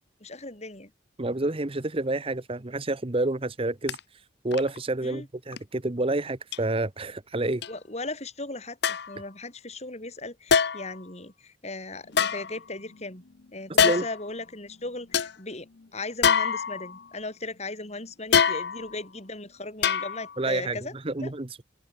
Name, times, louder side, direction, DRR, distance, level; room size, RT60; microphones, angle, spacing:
voice 1, 0.2-0.9 5.0-5.3 7.7-13.2 13.5-20.9 21.2-21.3, left 2 dB, 35° left, 5.2 m, -37 dB
voice 2, 1.2-4.0 4.4-7.6 13.8-14.1 20.4-20.8 21.0-21.6, right 2 dB, 30° right, 0.9 m, -28 dB
sound 1, 3.9-4.0 4.5-4.8 5.5-5.6 6.5-6.6 7.6-7.7 8.8-9.2 10.5-11.0 12.1-13.0 13.8-14.3 14.7-14.8 15.1-15.3 16.2-17.1 18.3-19.0 19.8-20.4 20.7-20.8, left 6 dB, 60° left, 0.7 m, -24 dB
open air
head